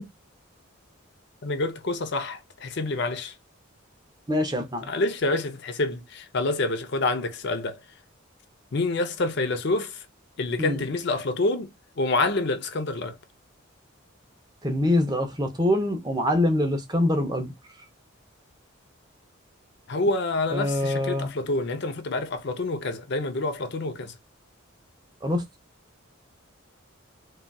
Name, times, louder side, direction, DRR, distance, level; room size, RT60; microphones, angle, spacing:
voice 1, 1.4-3.4 4.8-7.8 8.7-10.1 10.4-13.2 19.9-24.2, left 2 dB, 55° left, 0.5 m, -27 dB
voice 2, 4.3-4.9 10.6-10.8 14.6-17.5 20.5-21.3 25.2-25.4, left 1 dB, 20° right, 0.7 m, -24 dB
3.8 x 2.3 x 2.3 m
head